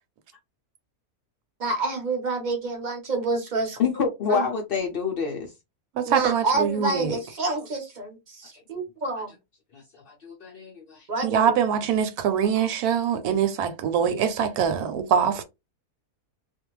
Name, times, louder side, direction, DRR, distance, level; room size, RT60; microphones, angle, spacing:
voice 1, 1.6-3.8 4.3-4.4 6.0-9.3 11.1-11.6, right 3 dB, 35° right, 0.9 m, -28 dB
voice 2, 3.8-5.5 9.7-11.1, left 5 dB, 70° left, 0.5 m, -27 dB
voice 3, 6.0-7.2 11.2-15.4, right 8 dB, 90° right, 1.1 m, -23 dB
2.5 x 2.2 x 3.0 m
omnidirectional pair, 1.5 m